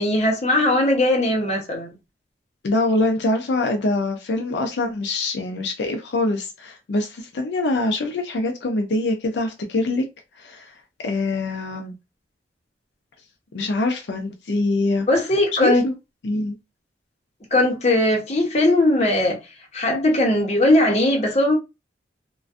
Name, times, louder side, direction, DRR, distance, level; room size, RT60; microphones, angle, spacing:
voice 1, 0.0-1.9 15.1-15.8 17.5-19.4 19.7-21.5, left 1 dB, 35° left, 0.8 m, -19 dB
voice 2, 2.6-10.0 10.4-10.7 11.0-11.9 13.5-15.1 15.6-15.9 16.2-16.5, left 2 dB, 75° left, 0.5 m, -24 dB
2.4 x 2.2 x 2.4 m
head